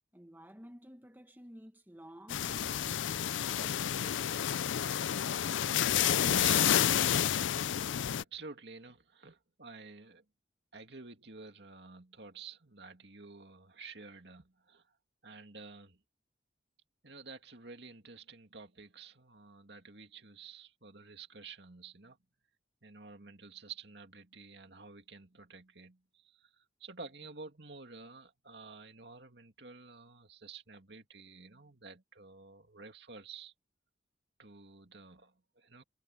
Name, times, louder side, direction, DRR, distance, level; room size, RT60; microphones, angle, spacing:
voice 1, 0.1-3.3 3.5-4.2, equal, 10° right, 1.5 m, -53 dB
sound 1, 2.3-8.2, left 10 dB, 90° left, 0.5 m, -30 dB
voice 2, 4.7-5.1 5.9-7.1 8.1-10.2 10.7-14.8 15.2-16.0 17.0-22.2 22.8-33.5 34.4-35.8, right 4 dB, 60° right, 2.6 m, -50 dB
head